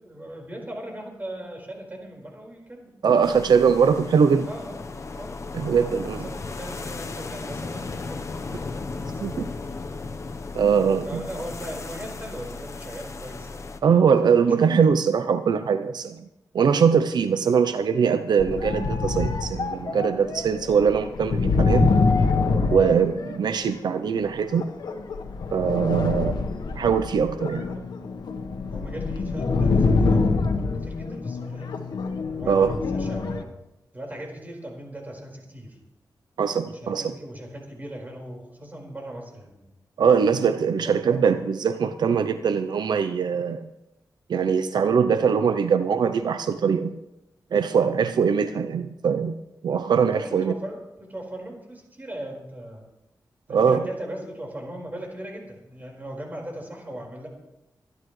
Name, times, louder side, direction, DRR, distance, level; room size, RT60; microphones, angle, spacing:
voice 1, 0.0-2.9 4.4-4.8 5.1-9.8 11.0-14.0 14.4-14.7 28.7-31.8 32.3-33.5 33.9-35.8 36.6-39.7 40.4-41.4 50.1-52.8 53.5-57.3, right 1 dB, 25° right, 0 dB, 4.8 m, -39 dB
voice 2, 3.0-4.5 5.5-6.2 9.2-9.5 10.5-11.2 13.8-16.2 16.5-21.9 22.7-24.7 25.5-26.5 26.7-27.6 32.5-32.7 36.4-37.1 40.0-43.7 44.3-47.0 47.5-49.3 49.6-50.5 53.5-53.8, right 6 dB, 85° right, 10 dB, 0.6 m, -22 dB
sound 1, 3.2-13.8, left 3 dB, 45° left, 0.9 m, -36 dB
sound 2, 18.4-23.7 24.5-33.4, left 4 dB, 90° left, 1.2 m, -25 dB
25.5 x 11.0 x 3.2 m, 0.93 s
wide cardioid pair, 105°, 7 cm